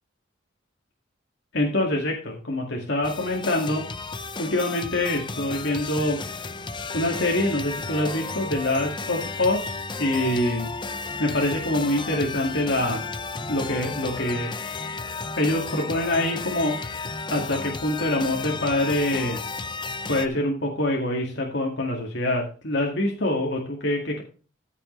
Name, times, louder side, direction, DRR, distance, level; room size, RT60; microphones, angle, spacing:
voice 1, 1.5-3.8 4.4-6.2 6.9-9.7 10.0-10.7 11.0-13.0 13.5-14.5 15.4-19.4 20.1-24.2, left 1 dB, 60° left, -1 dB, 2.0 m, -25 dB
sound 1, 3.0-20.3, left 4 dB, 20° left, 0.6 m, -33 dB
14.0 x 6.9 x 3.2 m, 0.36 s
head